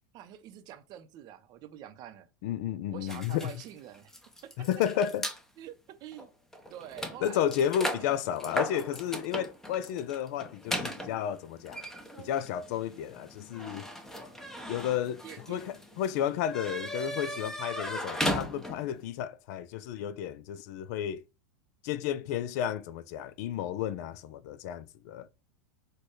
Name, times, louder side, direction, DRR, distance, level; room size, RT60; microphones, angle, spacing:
voice 1, 0.1-2.3 2.9-4.1 4.4-4.5 5.6-6.3 6.7-7.5 7.9-8.2 15.2-15.6, right 11 dB, 40° right, 0.6 m, -46 dB
voice 2, 2.4-3.5 4.6-5.3 7.2-11.8 12.2-13.9 14.7-15.2 15.5-21.2 21.8-25.3, left 10 dB, 55° left, 0.5 m, -32 dB
sound 1, 3.1-5.4 6.1-6.3 6.5-19.0, equal, 5° left, 0.7 m, -37 dB
6.4 x 2.2 x 3.1 m
hypercardioid pair, 125°, 10 cm